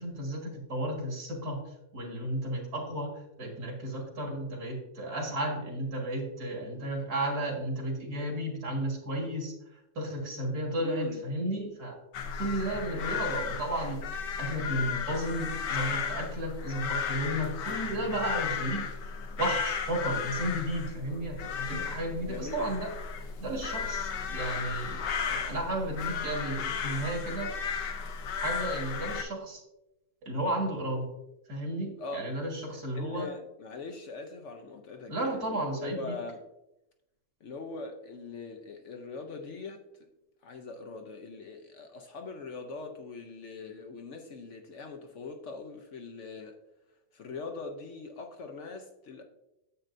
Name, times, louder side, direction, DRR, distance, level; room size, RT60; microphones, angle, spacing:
voice 1, 0.0-1.6 1.9-12.0 12.4-18.8 19.4-22.9 23.4-27.5 28.4-29.6 30.2-31.1 31.5-33.3 35.1-36.2, right 1 dB, 60° right, 0 dB, 2.2 m, -33 dB
voice 2, 10.8-11.2 22.2-22.8 32.0-32.3 32.7-36.4 37.4-39.8 40.4-46.6 47.1-49.2, left 3 dB, 60° left, 5 dB, 0.8 m, -41 dB
sound 1, 12.1-29.2, left 6 dB, 75° left, 1.4 m, -34 dB
9.8 x 7.8 x 2.6 m, 0.91 s
omnidirectional pair, 1.9 m